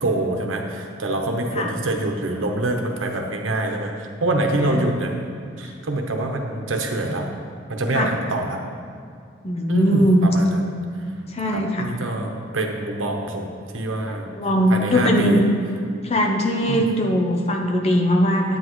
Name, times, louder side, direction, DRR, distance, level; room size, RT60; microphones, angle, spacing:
voice 1, 0.0-5.2 5.6-7.3 7.7-8.6 9.7-10.6 11.5-13.5 13.7-14.3 14.7-15.4 16.7-16.8, right 1 dB, 90° right, 2 dB, 1.0 m, -25 dB
voice 2, 9.4-10.3 11.3-11.9 14.4-15.5 16.0-18.6, equal, 30° left, 2 dB, 0.7 m, -20 dB
10.0 x 9.0 x 3.1 m, 2.2 s
head